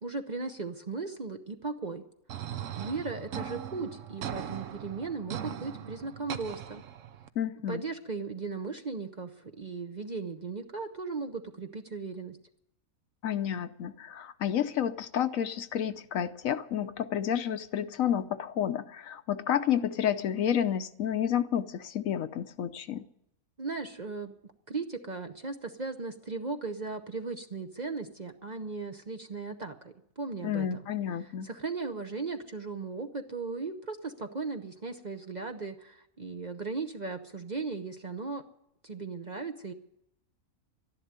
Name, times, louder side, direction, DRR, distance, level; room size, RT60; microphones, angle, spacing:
voice 1, 0.0-2.0 2.3-2.4 2.8-6.8 7.7-12.4 23.6-24.3 24.7-30.7 31.4-38.4 38.8-39.7, right 4 dB, 40° right, 6 dB, 0.7 m, -37 dB
sound 1, 2.3-7.3, right 9 dB, 65° right, 1.1 m, -39 dB
voice 2, 7.4-7.8 13.2-23.0 30.4-31.5, left 9 dB, 70° left, 11 dB, 1.1 m, -30 dB
12.5 x 11.0 x 9.4 m, 0.77 s
omnidirectional pair, 1.5 m